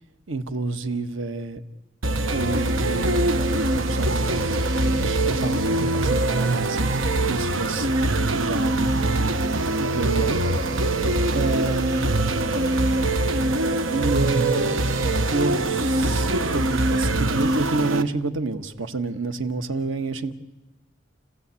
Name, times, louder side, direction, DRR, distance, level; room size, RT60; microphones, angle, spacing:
voice 1, 0.3-1.6 2.3-7.9 8.3-9.3 9.8-10.4 11.3-12.1 13.9-14.8 15.3-20.3, right 3 dB, 75° right, 1.4 m, -29 dB
sound 1, 2.0-18.0, right 2 dB, 90° right, 1.1 m, -23 dB
29.5 x 15.5 x 8.4 m
head